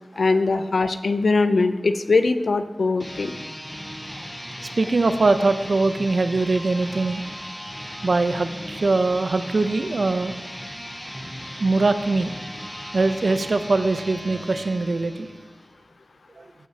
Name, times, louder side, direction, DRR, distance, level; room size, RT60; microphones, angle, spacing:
voice 1, 0.2-3.3, left 3 dB, 90° left, 10 dB, 0.4 m, -21 dB
sound 1, 2.9-15.7, equal, 10° left, 2.9 m, -37 dB
voice 2, 4.8-7.2 8.0-10.3 11.6-12.3 12.9-15.3 16.4-16.5, right 3 dB, 70° right, 10 dB, 0.5 m, -22 dB
14.5 x 6.1 x 2.8 m, 1.2 s
wide cardioid pair, 70°, 0 cm